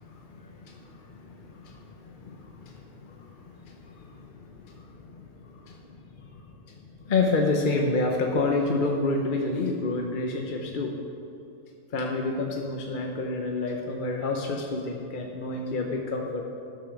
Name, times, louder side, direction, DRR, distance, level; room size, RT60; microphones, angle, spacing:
voice 1, 0.0-11.0 11.9-16.4, left 3 dB, 45° left, 1 dB, 0.8 m, -30 dB
11.5 x 6.1 x 6.3 m, 2.6 s
omnidirectional pair, 1.5 m